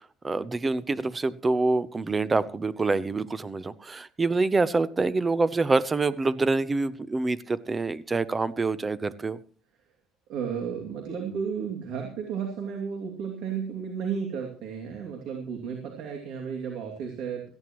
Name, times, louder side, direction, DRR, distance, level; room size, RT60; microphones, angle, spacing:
voice 1, 0.2-9.4, right 3 dB, 20° right, 0.7 m, -26 dB
voice 2, 10.3-17.5, right 6 dB, 70° right, 2.7 m, -33 dB
17.5 x 14.5 x 3.1 m
cardioid pair, 145°, 0 cm